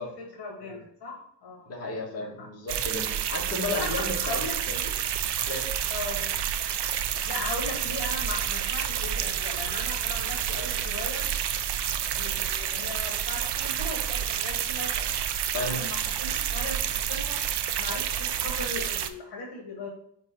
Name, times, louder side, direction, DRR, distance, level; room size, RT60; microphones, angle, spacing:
voice 1, 0.0-1.7 2.2-2.5 3.7-4.9 5.9-6.4 7.2-11.3 12.1-15.1 15.5-17.4 17.8-19.9, left 2 dB, 70° left, 0 dB, 1.5 m, -38 dB
voice 2, 1.7-4.4 4.7-4.8 5.4-5.7 15.5-15.8, left 2 dB, 35° left, -4 dB, 1.8 m, -33 dB
sound 1, 2.7-19.1, right 9 dB, 70° right, 0.6 m, -29 dB
5.1 x 4.7 x 4.5 m, 0.67 s
wide cardioid pair, 165°, 42 cm